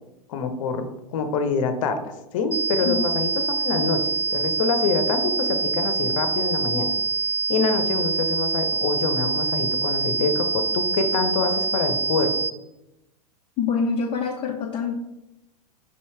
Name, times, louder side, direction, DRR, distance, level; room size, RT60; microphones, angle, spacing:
voice 1, 0.3-0.8 1.1-2.0 2.3-6.9 7.5-12.3, left 5 dB, 55° left, 8 dB, 0.9 m, -25 dB
sound 1, 2.5-12.5, right 4 dB, 10° right, 0.6 m, -25 dB
voice 2, 13.6-14.9, left 5 dB, 30° left, 0 dB, 0.7 m, -25 dB
5.5 x 5.4 x 3.2 m, 0.92 s
figure-of-eight pair, 95°, 20 cm